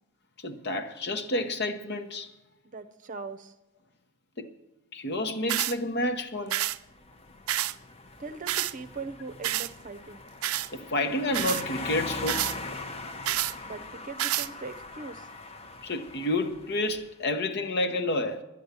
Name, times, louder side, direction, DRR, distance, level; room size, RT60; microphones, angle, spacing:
voice 1, 0.4-2.3 4.4-4.5 4.9-6.6 10.7-12.5 15.8-18.4, left 1 dB, 50° left, 1.1 m, -30 dB
voice 2, 2.6-3.5 8.2-10.2 13.6-15.3, right 4 dB, 35° right, 0.7 m, -40 dB
sound 1, 5.5-5.7 6.5-6.8 7.5-7.7 8.5-8.7 9.4-9.7 10.4-10.7 11.3-11.6 12.3-12.6 13.2-13.5 14.2-14.5, right 13 dB, 80° right, 0.5 m, -28 dB
sound 2, 6.7-17.0, left 2 dB, 30° left, 0.8 m, -41 dB
11.0 x 10.5 x 8.2 m
head